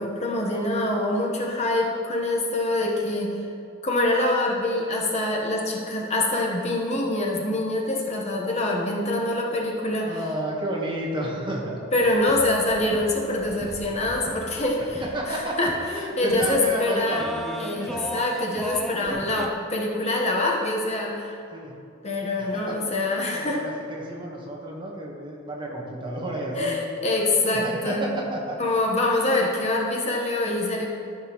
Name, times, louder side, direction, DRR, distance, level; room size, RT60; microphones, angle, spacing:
voice 1, 0.0-3.4 3.8-10.1 11.9-15.7 16.2-17.2 17.6-21.4 22.0-23.6 26.5-28.0 28.6-30.9, left 2 dB, 35° left, -1 dB, 1.0 m, -25 dB
voice 2, 10.1-11.8 15.0-18.2 18.6-19.3 21.5-21.8 22.4-22.9 23.3-26.7 27.4-28.6, right 1 dB, 25° right, -2 dB, 1.1 m, -32 dB
sound 1, 12.0-19.5, equal, ahead, 0.4 m, -37 dB
13.5 x 5.9 x 3.0 m, 2.6 s
head